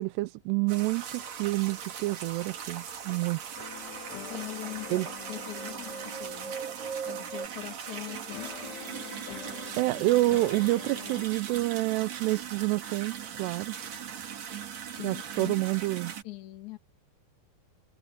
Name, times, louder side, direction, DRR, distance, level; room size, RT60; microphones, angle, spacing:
voice 1, 0.0-3.7 4.9-5.1 9.8-13.7 15.0-16.1, right 20 dB, 85° right, 2.7 m, -28 dB
sound 1, 0.7-16.2, right 8 dB, 50° right, 2.7 m, -40 dB
sound 2, 3.6-6.8 8.0-11.3, left 12 dB, 80° left, 3.3 m, -45 dB
sound 3, 3.7-7.5, right 6 dB, 30° left, 1.3 m, -41 dB
voice 2, 4.3-6.6 7.1-8.8 14.9-15.7 16.2-16.8, left 15 dB, 50° left, 3.4 m, -42 dB
omnidirectional pair, 4.9 m